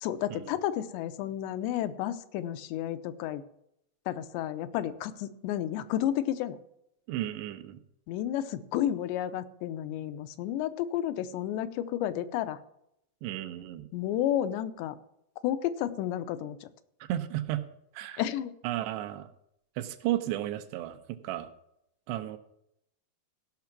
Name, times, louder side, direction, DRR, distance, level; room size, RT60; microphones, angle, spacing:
voice 1, 0.0-3.4 4.1-6.6 8.1-12.6 13.9-15.0 15.4-16.7 18.2-18.5, left 11 dB, 85° left, 11 dB, 2.9 m, -31 dB
voice 2, 7.1-7.8 13.2-13.9 17.1-17.6 17.9-18.2 18.6-19.3 19.8-21.5 22.1-22.4, right 13 dB, 85° right, 9 dB, 3.0 m, -33 dB
15.0 x 5.9 x 5.9 m, 0.78 s
omnidirectional pair, 4.9 m